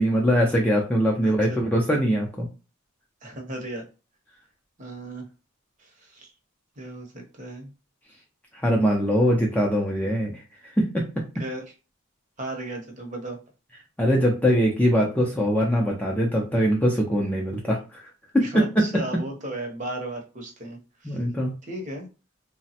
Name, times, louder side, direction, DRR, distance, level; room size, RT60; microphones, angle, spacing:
voice 1, 0.0-2.5 8.5-10.4 10.8-11.1 14.0-18.0 18.3-19.2 21.0-21.5, equal, 5° left, -1 dB, 0.4 m, -22 dB
voice 2, 1.2-1.6 3.2-3.8 4.8-5.2 5.8-6.3 6.8-7.7 11.4-11.6 12.4-13.4 18.4-21.2 21.6-22.1, right 1 dB, 35° right, 2 dB, 0.7 m, -35 dB
3.2 x 2.0 x 2.7 m, 0.32 s
head